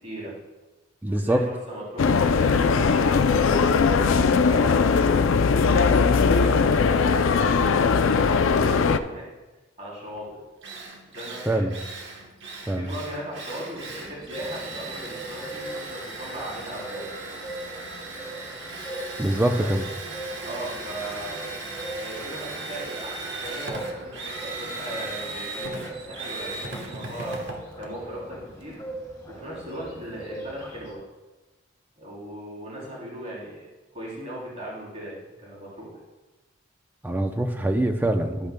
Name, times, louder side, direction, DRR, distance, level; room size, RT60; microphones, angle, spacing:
voice 1, 0.0-0.3 1.1-3.9 4.4-5.3 5.7-9.2 9.8-10.3 11.1-11.6 12.8-17.1 19.5-19.7 20.4-21.4 21.9-27.4 27.7-28.8 29.3-31.0 32.0-33.7 33.9-36.0, right 1 dB, 35° right, -5 dB, 3.1 m, -38 dB
voice 2, 1.0-1.4 11.5-11.8 12.7-12.9 19.2-19.8 37.0-38.5, right 1 dB, 10° right, 6 dB, 0.5 m, -24 dB
sound 1, 2.0-9.0, left 5 dB, 85° left, 0.4 m, -20 dB
Drill, 10.2-10.3 10.6-28.7, right 2 dB, 65° right, 1.2 m, -37 dB
sound 2, 13.7-30.9, right 1 dB, 15° left, 2.0 m, -40 dB
12.0 x 8.5 x 2.2 m, 1.1 s
head